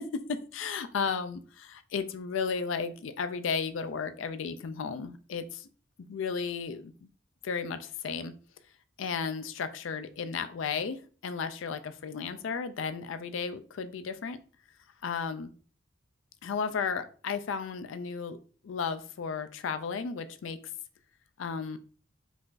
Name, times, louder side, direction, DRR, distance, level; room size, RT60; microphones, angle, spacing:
voice 1, 0.0-5.7 6.0-6.9 7.4-8.3 9.0-14.4 15.0-15.5 16.4-18.4 18.6-20.6 21.4-21.8, left 5 dB, 70° left, 11 dB, 0.4 m, -34 dB
4.8 x 2.5 x 3.8 m, 0.40 s
head